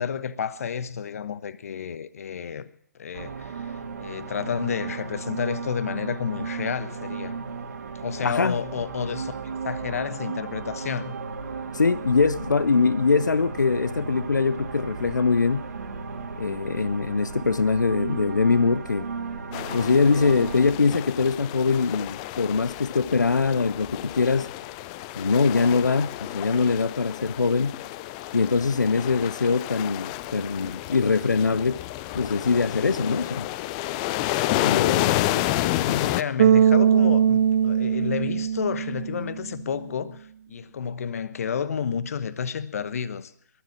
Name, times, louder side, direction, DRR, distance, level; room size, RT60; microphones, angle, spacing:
voice 1, 0.0-7.4 8.0-9.3 9.6-11.2 35.8-43.3, left 7 dB, 55° left, 1.1 m, -31 dB
sound 1, 3.1-20.7, right 5 dB, 65° right, 2.6 m, -35 dB
voice 2, 8.2-8.6 11.7-15.7 16.4-19.0 19.7-24.5 25.2-27.8 28.3-31.8 32.1-33.5 34.6-35.5 35.9-36.1, left 4 dB, 80° left, 0.7 m, -23 dB
sound 2, 19.5-36.2, left 16 dB, 20° left, 0.5 m, -30 dB
Bass guitar, 36.4-39.5, right 8 dB, 40° right, 0.6 m, -20 dB
22.0 x 7.7 x 7.3 m
figure-of-eight pair, 140°, 10 cm